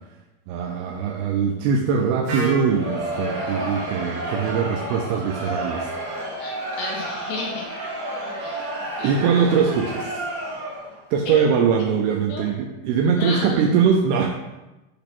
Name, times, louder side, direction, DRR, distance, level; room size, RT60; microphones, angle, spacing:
voice 1, 0.5-5.9 9.0-10.2 11.1-14.3, right 6 dB, 85° right, 1 dB, 2.4 m, -22 dB
Wind instrument woodwind instrument, 2.3-6.1, right 2 dB, 65° right, 3.1 m, -35 dB
Crowd, 2.5-11.0, right 1 dB, 45° right, 2.5 m, -31 dB
voice 2, 6.4-7.7 8.4-8.7 9.0-9.1 11.3-11.4 12.3-12.5 13.2-13.7, left 3 dB, 85° left, -2 dB, 3.7 m, -32 dB
8.7 x 3.0 x 6.0 m, 1.0 s
omnidirectional pair, 4.8 m